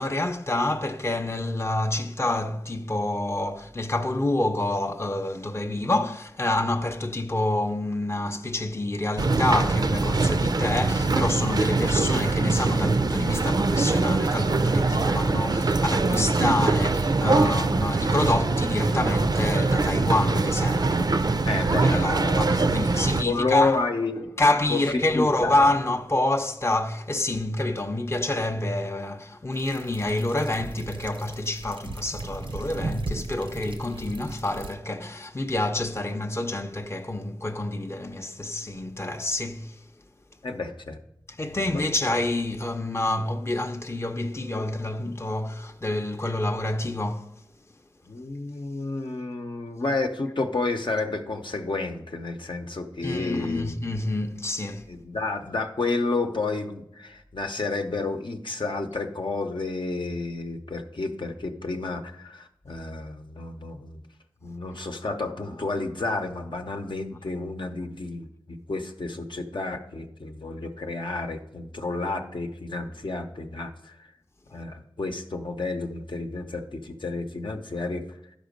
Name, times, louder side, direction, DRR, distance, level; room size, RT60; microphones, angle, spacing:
voice 1, 0.0-23.9 24.4-39.8 41.4-47.3 53.0-54.9, left 2 dB, 30° left, 0.6 m, -27 dB
sound 1, 9.2-23.2, right 3 dB, 55° right, 0.4 m, -23 dB
voice 2, 21.4-22.5 23.2-24.3 24.7-25.6 40.4-41.0 41.7-41.8 48.1-53.7 54.9-64.0 64.4-74.0 74.5-78.1, left 3 dB, 70° left, 0.8 m, -30 dB
sound 2, 29.5-34.7, right 2 dB, 85° right, 0.7 m, -36 dB
12.0 x 5.1 x 5.2 m
wide cardioid pair, 60°, 9 cm